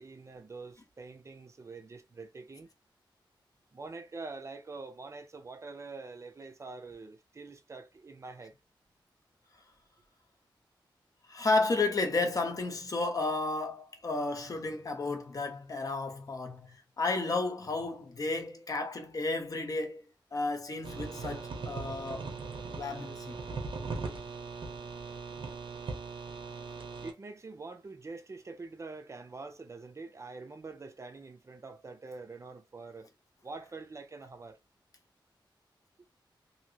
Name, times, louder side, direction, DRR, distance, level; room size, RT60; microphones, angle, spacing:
voice 1, 0.0-2.7 3.7-8.6 27.0-33.1 33.4-34.6, right 3 dB, 35° right, 0.5 m, -45 dB
voice 2, 11.3-20.0 20.3-22.3 22.7-23.4, left 3 dB, 45° left, 0.8 m, -32 dB
sound 1, 20.8-27.1, right 4 dB, 90° right, 0.8 m, -39 dB
2.9 x 2.8 x 2.8 m
wide cardioid pair, 145°, 8 cm